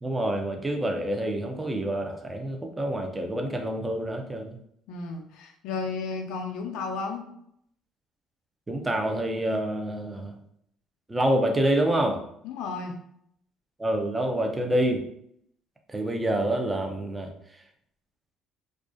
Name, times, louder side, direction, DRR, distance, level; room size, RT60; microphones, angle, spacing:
voice 1, 0.0-4.6 8.7-10.3 11.1-12.2 13.8-15.0 15.9-17.3, right 1 dB, 20° right, 3 dB, 0.5 m, -27 dB
voice 2, 4.9-7.2 12.4-13.0, left 4 dB, 80° left, 3 dB, 0.3 m, -33 dB
2.4 x 2.2 x 2.4 m, 0.71 s
supercardioid pair, 80°, 0 cm